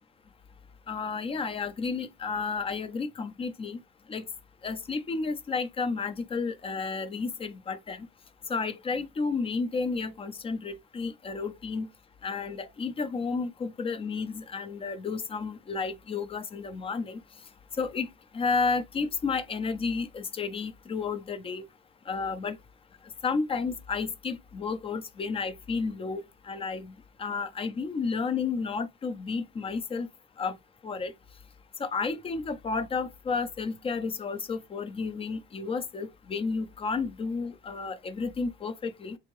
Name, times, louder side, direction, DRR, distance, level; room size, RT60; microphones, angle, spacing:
voice 1, 0.9-3.8 4.1-4.2 4.6-8.1 8.5-11.9 12.2-17.2 17.8-18.1 18.3-21.6 22.1-22.6 23.2-26.9 27.2-30.1 30.4-30.5 30.8-31.1 31.8-39.2, left 4 dB, 30° left, 0.4 m, -32 dB
3.5 x 2.8 x 3.0 m
cardioid pair, 165°, 19 cm